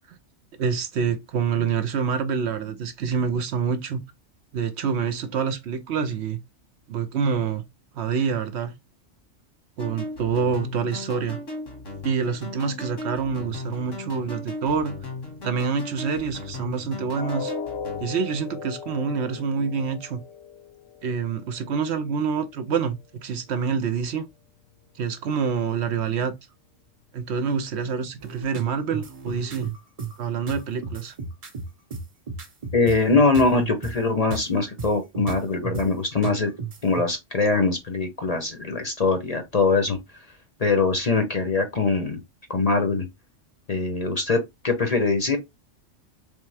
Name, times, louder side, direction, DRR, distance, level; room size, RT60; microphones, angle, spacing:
voice 1, 0.6-4.0 4.5-6.4 6.9-7.6 8.0-8.7 9.8-11.4 12.0-15.0 15.4-17.5 18.0-20.2 21.0-24.3 25.0-26.4 27.1-29.7 30.2-31.1, right 6 dB, 65° right, 0.9 m, -26 dB
sound 1, 9.8-18.0, left 2 dB, 90° left, 2.0 m, -37 dB
sound 2, 17.2-23.1 23.5-23.7 24.2-24.3, left 6 dB, 70° left, 0.9 m, -39 dB
sound 3, 28.2-33.9 34.3-34.4 34.8-35.9 36.2-37.0, right 5 dB, 35° right, 0.8 m, -33 dB
voice 2, 32.7-36.5 36.8-40.0 40.6-42.2 42.5-43.1 43.7-45.4, left 3 dB, 40° left, 0.7 m, -22 dB
3.6 x 3.3 x 3.3 m
omnidirectional pair, 1.3 m